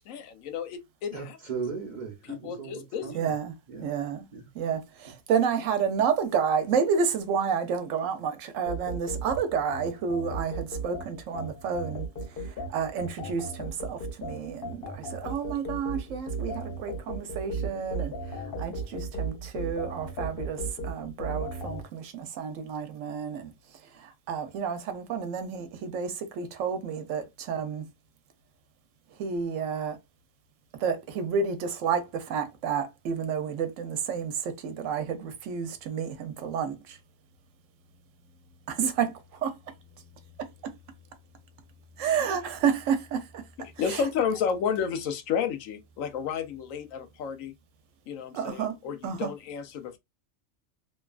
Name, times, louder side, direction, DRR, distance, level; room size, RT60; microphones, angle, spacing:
voice 1, 0.0-1.2 2.3-3.1 43.8-47.5 48.1-50.0, left 7 dB, 90° left, 1.0 m, -31 dB
voice 2, 1.1-3.3 3.7-3.9 4.3-4.5, right 5 dB, 45° right, 0.8 m, -37 dB
voice 3, 3.1-3.5 3.8-4.2 4.5-23.5 23.9-27.8 29.2-30.0 30.8-37.0 38.7-39.5 42.0-43.4 43.8-44.1 48.3-48.8 49.0-49.3, right 6 dB, 75° right, 1.0 m, -30 dB
sound 1, 8.7-21.8, right 2 dB, 55° left, 0.8 m, -35 dB
2.9 x 2.3 x 2.3 m
omnidirectional pair, 1.3 m